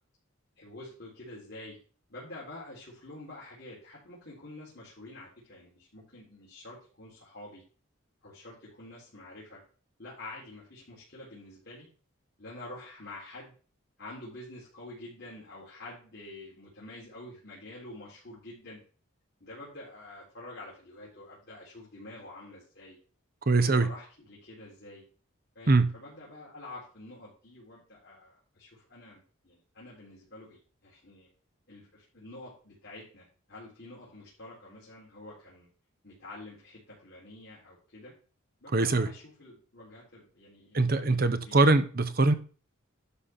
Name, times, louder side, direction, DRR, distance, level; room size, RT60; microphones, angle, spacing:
voice 1, 0.6-1.8 2.1-7.6 8.2-9.6 10.0-11.9 12.4-13.5 14.0-18.8 19.4-23.0 23.5-25.0 25.6-31.3 31.7-35.7 36.0-38.1 38.6-41.6, left 2 dB, 50° left, 3.6 m, -47 dB
voice 2, 23.5-23.9 25.7-25.9 38.7-39.1 40.7-42.3, right 3 dB, 45° right, 0.8 m, -23 dB
11.5 x 4.1 x 5.8 m
head